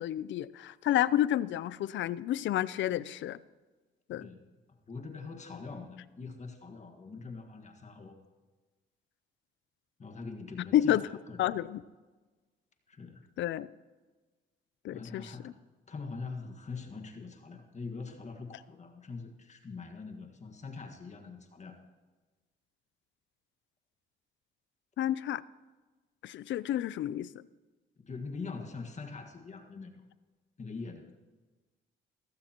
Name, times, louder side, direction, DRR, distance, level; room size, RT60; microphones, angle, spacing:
voice 1, 0.0-3.4 4.1-4.3 10.7-11.0 11.4-11.8 13.4-13.7 14.8-15.5 25.0-25.4 26.2-27.3, left 12 dB, 70° left, 18 dB, 0.5 m, -30 dB
voice 2, 4.9-8.2 10.0-11.5 12.9-13.2 14.9-15.5 15.9-21.8 28.0-30.0 30.6-31.1, left 4 dB, 35° left, 5 dB, 1.7 m, -43 dB
17.5 x 15.0 x 3.0 m, 1.3 s
cardioid pair, 90°, 20 cm